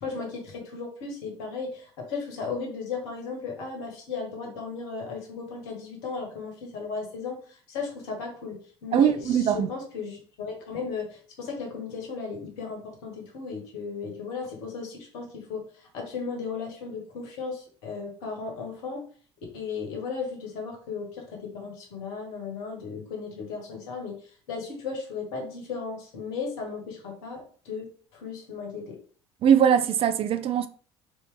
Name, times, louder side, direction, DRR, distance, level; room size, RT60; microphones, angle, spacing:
voice 1, 0.0-15.6 15.9-19.0 19.5-24.1 24.5-29.0, left 5 dB, 65° left, 1.7 m, -35 dB
voice 2, 8.9-9.7 29.4-30.7, right 8 dB, 40° right, 0.5 m, -21 dB
4.1 x 3.3 x 3.4 m
figure-of-eight pair, 65°, 15 cm